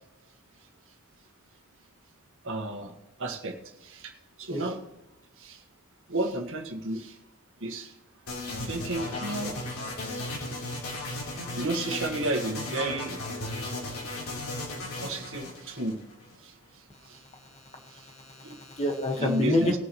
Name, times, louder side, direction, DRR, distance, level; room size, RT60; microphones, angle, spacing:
voice 1, 2.4-2.9 3.2-3.6 3.8-4.1 4.4-4.8 5.4-5.6 6.1-7.2 7.6-7.9 8.5-9.5 11.6-13.2 14.8-16.0 16.4-16.5 17.0-17.2 17.9-18.1 18.4-18.6 19.2-19.8, right 2 dB, 60° right, 3 dB, 1.7 m, -32 dB
sound 1, 8.3-16.3, left 2 dB, 70° left, 3.7 m, -35 dB
voice 2, 18.0-19.8, left 1 dB, 30° left, 3 dB, 1.5 m, -28 dB
19.5 x 7.3 x 3.1 m, 0.93 s
head